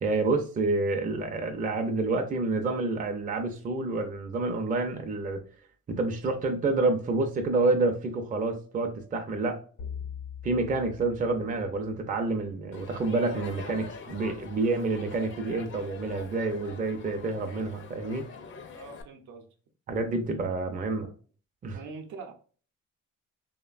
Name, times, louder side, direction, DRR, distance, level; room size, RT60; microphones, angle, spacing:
voice 1, 0.0-5.4 5.9-9.6 10.4-18.3 19.9-21.1 21.6-21.8, right 3 dB, 30° right, 5 dB, 0.4 m, -28 dB
sound 1, 9.8-12.3, left 8 dB, 85° left, 0.7 m, -42 dB
Crowd, 12.7-19.0, left 5 dB, 40° left, 0.4 m, -44 dB
voice 2, 18.7-19.5 21.7-22.3, right 4 dB, 75° right, 5 dB, 0.6 m, -43 dB
3.0 x 2.1 x 2.4 m, 0.41 s
cardioid pair, 90°, 30 cm